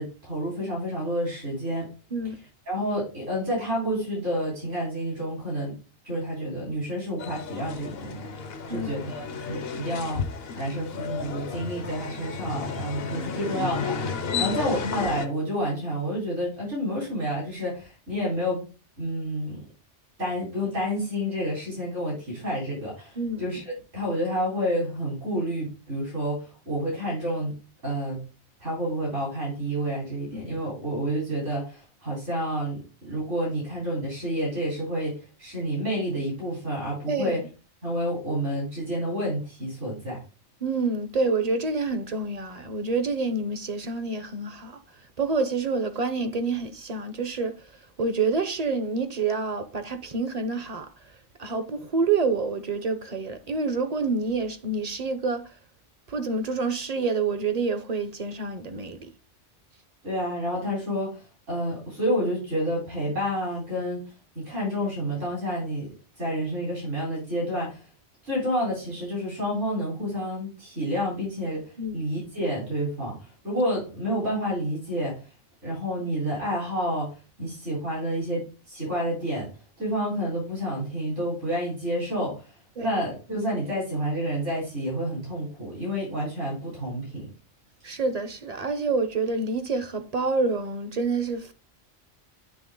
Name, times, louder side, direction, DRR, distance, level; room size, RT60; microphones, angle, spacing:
voice 1, 0.0-1.9 2.7-5.8 6.0-8.3 8.7-10.2 10.6-14.1 14.4-18.6 19.0-19.6 20.2-27.6 27.8-28.2 28.6-37.4 37.8-40.2 60.0-64.1 64.3-65.9 66.2-67.8 68.2-71.7 71.9-75.2 75.6-79.5 79.8-82.5 82.8-87.3, equal, 85° right, 4.2 m, -29 dB
sound 1, 7.2-15.3, left 5 dB, 60° left, 0.8 m, -33 dB
voice 2, 37.1-37.4 40.6-44.8 45.2-47.5 48.0-50.9 51.4-55.5 56.1-59.1 71.8-72.0 82.8-82.9 87.8-91.5, right 3 dB, 40° right, 0.7 m, -27 dB
9.3 x 3.3 x 3.7 m
omnidirectional pair, 1.2 m